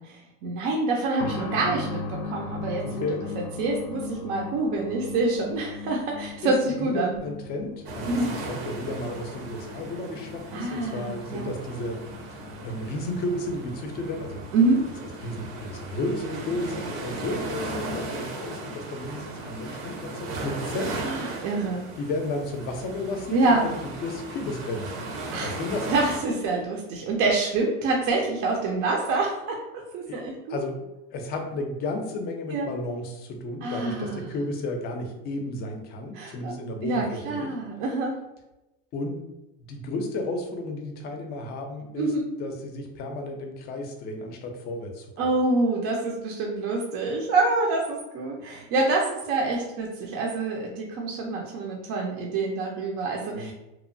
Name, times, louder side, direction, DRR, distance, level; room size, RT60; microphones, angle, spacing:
voice 1, 0.0-3.1 3.4-7.1 8.1-8.3 10.5-11.5 14.5-14.9 21.0-21.9 23.3-23.6 25.3-25.5 25.9-30.6 32.5-32.7 33.6-34.2 36.1-36.5 36.8-38.2 42.0-42.3 45.2-53.5, right 3 dB, 50° right, -1 dB, 0.5 m, -26 dB
sound 1, 1.2-15.6 15.9-16.0 16.9-17.1, left 4 dB, 90° left, 0.5 m, -39 dB
voice 2, 2.8-3.2 6.4-6.5 6.8-8.2 8.4-12.0 12.3-14.4 15.2-21.0 21.3-21.5 22.0-24.9 25.4-25.9 30.1-30.2 30.5-30.8 31.1-37.5 38.9-39.2 39.7-42.1 42.4-45.3 53.3-53.5, left 2 dB, 35° left, 4 dB, 0.5 m, -33 dB
sound 2, 7.8-26.2, right 2 dB, 80° right, 0.8 m, -37 dB
2.9 x 2.1 x 2.5 m, 0.95 s
supercardioid pair, 140°, 29 cm